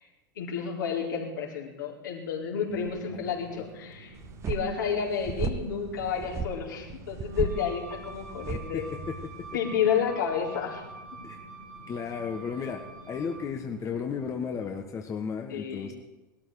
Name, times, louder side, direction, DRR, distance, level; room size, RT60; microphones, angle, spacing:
voice 1, 0.4-4.1 4.5-8.9 9.5-10.8 15.5-15.9, left 7 dB, 70° left, -3 dB, 4.1 m, -30 dB
sound 1, 2.7-14.9, left 1 dB, 55° right, 3.5 m, -50 dB
sound 2, 4.2-9.6, right 5 dB, 25° right, 1.2 m, -36 dB
Wind instrument woodwind instrument, 7.2-13.6, right 3 dB, 70° right, 3.8 m, -46 dB
voice 2, 8.7-9.1 11.2-11.4 11.9-15.9, left 6 dB, 30° left, 3 dB, 1.4 m, -34 dB
19.5 x 13.0 x 5.0 m, 1.1 s
figure-of-eight pair, 85°, 11 cm